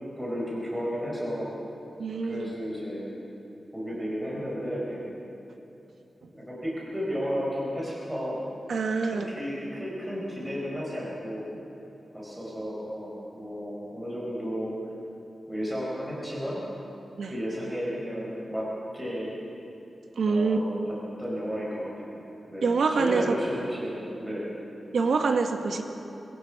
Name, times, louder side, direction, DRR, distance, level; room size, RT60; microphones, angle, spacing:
voice 1, 0.2-1.5 2.3-3.1 3.7-5.0 6.3-8.4 9.1-11.5 12.1-14.7 15.5-16.6 17.2-19.3 20.3-22.2 22.5-24.5, equal, 5° right, -6 dB, 4.9 m, -33 dB
voice 2, 2.0-2.5 6.2-6.3 8.7-9.4 17.2-17.3 20.2-20.6 22.6-23.4 24.9-25.8, right 4 dB, 80° right, 4 dB, 1.7 m, -25 dB
26.0 x 21.0 x 5.0 m, 2.9 s
wide cardioid pair, 135°, 0 cm